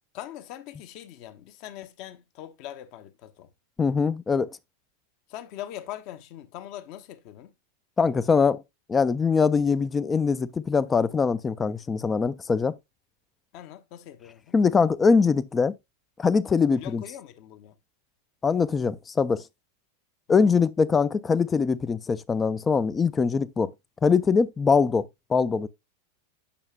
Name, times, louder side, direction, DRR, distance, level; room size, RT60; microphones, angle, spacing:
voice 1, 0.1-3.5 5.3-7.5 13.5-14.6 16.7-17.8 20.4-20.5, left 12 dB, 45° left, 1.0 m, -41 dB
voice 2, 3.8-4.5 8.0-8.6 8.9-12.7 14.5-15.7 16.2-17.0 18.4-19.4 20.3-23.7 24.0-25.7, left 5 dB, 15° left, 0.4 m, -22 dB
8.5 x 6.4 x 2.2 m
figure-of-eight pair, 90°, 0 cm